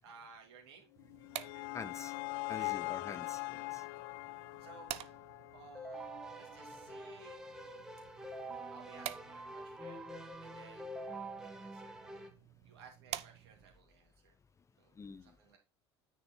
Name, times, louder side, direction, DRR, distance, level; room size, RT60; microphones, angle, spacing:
voice 1, 0.0-0.9 1.5-1.7 2.5-2.8 3.8-3.9 4.6-4.9 5.5-7.4 8.7-11.0 11.4-14.3 14.8-15.6, right 5 dB, 70° right, 2.7 m, -58 dB
sound 1, 1.0-6.2, left 26 dB, 60° left, 0.4 m, -42 dB
sound 2, 1.0-13.8, right 13 dB, 50° right, 0.7 m, -50 dB
voice 2, 1.7-2.1 2.5-3.8 15.0-15.3, left 5 dB, 20° left, 0.6 m, -46 dB
Keyboard (musical), 5.7-12.3, right 1 dB, 5° right, 1.6 m, -46 dB
9.5 x 4.7 x 4.2 m
figure-of-eight pair, 70°, 14 cm